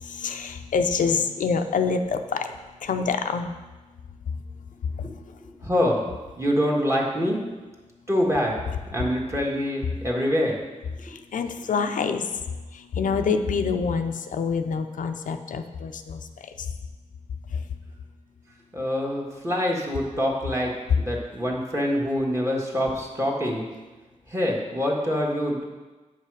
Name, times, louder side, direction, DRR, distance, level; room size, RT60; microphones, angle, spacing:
voice 1, 0.0-2.5 2.8-3.5 5.0-5.1 11.0-12.3 12.7-16.2, left 5 dB, 85° left, 7 dB, 0.5 m, -26 dB
voice 2, 5.6-7.4 8.1-8.5 8.9-10.6 18.7-20.7 21.0-23.6 24.3-25.6, equal, 20° right, -1 dB, 1.7 m, -25 dB
7.6 x 5.7 x 4.8 m, 1.2 s
wide cardioid pair, 75°, 13 cm